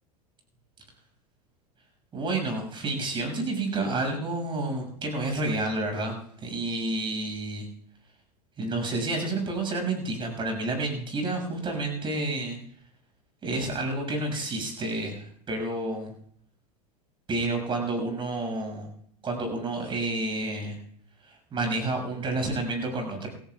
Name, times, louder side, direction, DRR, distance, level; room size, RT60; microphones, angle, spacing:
voice 1, 2.1-7.7 8.6-12.6 13.4-16.1 17.3-18.9 19.2-20.8 21.2-23.3, right 2 dB, 25° right, 3 dB, 6.5 m, -30 dB
28.0 x 15.5 x 2.4 m, 0.63 s
figure-of-eight pair, 85°, 21 cm